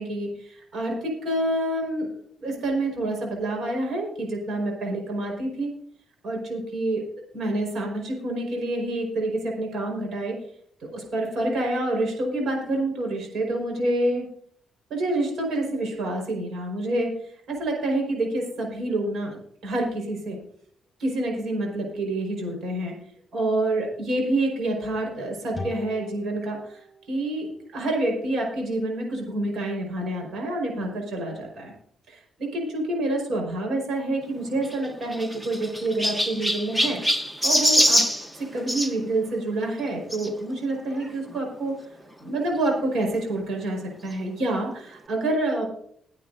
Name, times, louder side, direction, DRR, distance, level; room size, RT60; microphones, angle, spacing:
voice 1, 0.0-2.1 2.4-5.7 6.2-7.0 7.3-10.4 10.8-14.2 14.9-20.4 21.0-22.9 23.3-31.7 32.1-38.0 38.3-41.7 42.2-45.7, right 1 dB, 65° right, 1 dB, 5.0 m, -27 dB
sound 1, 25.5-28.9, left 2 dB, 15° left, 5.1 m, -43 dB
Chirp tweet, 34.6-38.9 40.1-40.3 41.0-41.1 41.3-41.4 42.7-42.8, equal, 5° right, 1.1 m, -24 dB
22.0 x 8.6 x 2.7 m, 0.63 s
cardioid pair, 140°, 0 cm